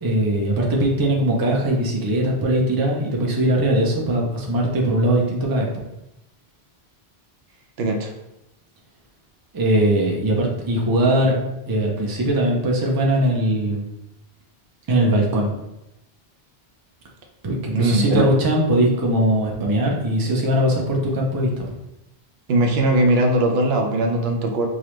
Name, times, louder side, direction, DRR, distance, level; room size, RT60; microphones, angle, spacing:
voice 1, 0.0-5.8 9.5-13.9 14.9-15.5 17.4-21.7, right 1 dB, 25° right, -2 dB, 0.5 m, -20 dB
voice 2, 7.8-8.1 17.7-18.3 22.5-24.7, right 1 dB, 75° right, 2 dB, 0.8 m, -19 dB
4.9 x 2.0 x 3.0 m, 0.89 s
omnidirectional pair, 1.1 m